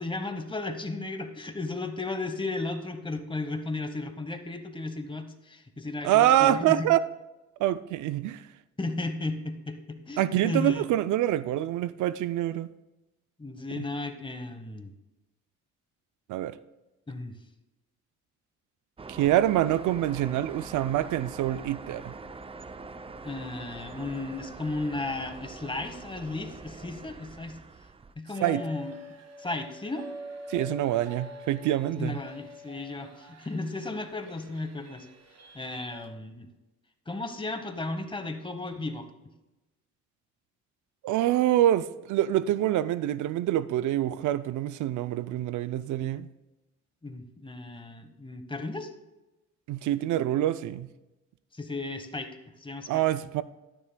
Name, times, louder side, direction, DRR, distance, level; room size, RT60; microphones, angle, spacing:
voice 1, 0.0-6.9 8.8-10.9 13.4-14.9 17.1-17.4 23.2-27.6 28.2-29.0 29.4-30.1 32.0-35.1 35.5-36.5 37.1-39.1 47.0-48.9 51.5-52.3 52.6-53.0, left 2 dB, 15° left, 1.1 m, -34 dB
voice 2, 6.0-7.0 7.6-8.4 10.2-12.7 13.8-13.9 16.3-16.6 19.1-22.1 28.4-28.7 30.5-32.2 41.0-46.3 49.7-50.9 52.9-53.4, right 13 dB, 75° right, 0.5 m, -26 dB
sound 1, 19.0-28.1, right 3 dB, 20° right, 0.5 m, -44 dB
sound 2, 28.3-36.1, equal, 55° right, 1.5 m, -45 dB
12.0 x 9.9 x 2.2 m
cardioid pair, 90°, 30 cm